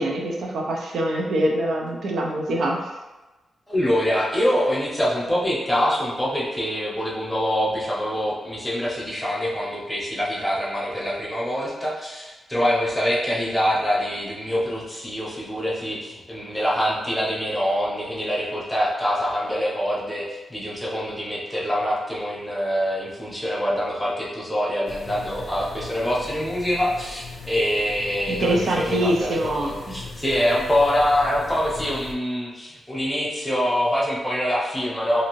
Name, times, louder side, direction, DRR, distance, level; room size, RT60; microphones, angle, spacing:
voice 1, 0.0-2.8 28.3-29.7, right 1 dB, 75° right, 0 dB, 0.4 m, -24 dB
voice 2, 3.7-35.3, equal, 10° left, -5 dB, 0.7 m, -25 dB
sound 1, 24.9-32.1, left 3 dB, 60° left, 0.4 m, -39 dB
2.6 x 2.5 x 3.0 m, 1.1 s
wide cardioid pair, 125°, 0 cm